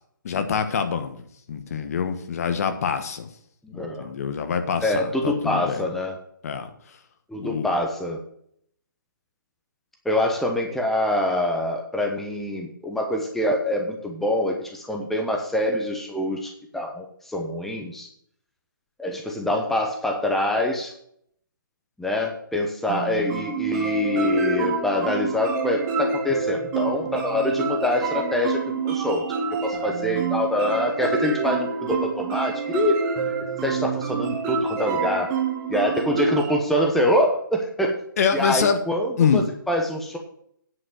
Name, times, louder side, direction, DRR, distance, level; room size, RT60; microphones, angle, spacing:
voice 1, 0.2-1.2 1.5-3.3 3.8-5.8 6.4-6.7 7.4-7.7 38.2-38.8 39.2-39.4, left 6 dB, 45° left, 8 dB, 1.3 m, -25 dB
voice 2, 3.6-4.1 4.8-6.2 7.3-8.2 10.0-18.1 19.0-20.9 22.0-29.2 29.6-33.0 33.6-35.3 35.7-38.0 38.3-40.2, left 1 dB, ahead, 1 dB, 0.9 m, -25 dB
sound 1, 22.9-36.6, right 5 dB, 20° right, 1.4 m, -27 dB
9.6 x 5.3 x 7.6 m, 0.68 s
figure-of-eight pair, 140°, 11 cm